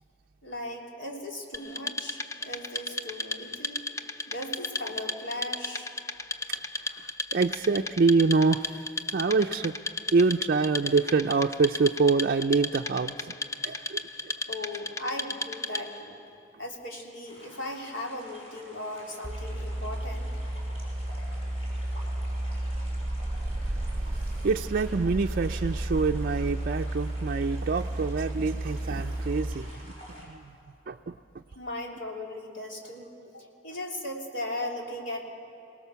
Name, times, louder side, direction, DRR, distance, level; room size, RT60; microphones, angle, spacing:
voice 1, 0.4-3.9 4.3-5.9 14.5-16.2 16.6-20.3 31.5-35.3, left 1 dB, 75° left, 0 dB, 3.1 m, -37 dB
Wood, 1.5-16.1, left 2 dB, 15° left, 0.6 m, -35 dB
voice 2, 6.8-8.8 9.1-9.8 10.1-13.3 13.6-14.3 23.9-29.9 30.3-30.5 30.9-31.1, right 4 dB, 50° right, 3 dB, 0.4 m, -26 dB
sound 1, 17.2-30.2, equal, 35° left, 6.4 m, -50 dB
sound 2, 19.2-29.5, right 1 dB, 20° right, 1.0 m, -32 dB
23.5 x 18.5 x 6.9 m, 2.9 s
head